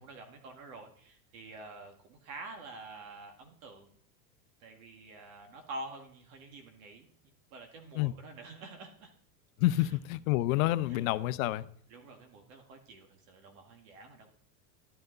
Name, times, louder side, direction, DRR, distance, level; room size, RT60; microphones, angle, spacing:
voice 1, 0.0-3.9 4.6-7.1 7.5-9.1 9.8-9.9 10.9-11.1 11.9-14.3, right 2 dB, 65° right, 1.9 m, -47 dB
voice 2, 9.6-11.7, left 16 dB, 65° left, 0.7 m, -28 dB
12.5 x 7.8 x 3.9 m
supercardioid pair, 130°, 45 cm